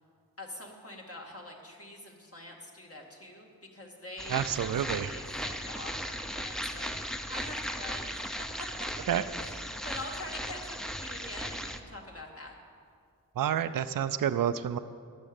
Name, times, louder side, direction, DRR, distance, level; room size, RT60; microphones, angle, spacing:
voice 1, 0.4-8.2 8.6-8.7 9.4-12.5, left 1 dB, 40° left, 0 dB, 2.1 m, -45 dB
sound 1, 4.2-11.8, equal, ahead, 0.7 m, -37 dB
voice 2, 4.3-5.1 9.1-9.2 13.4-14.8, right 9 dB, 65° right, 12 dB, 0.5 m, -29 dB
11.5 x 6.2 x 8.8 m, 2.2 s
cardioid pair, 40°, 36 cm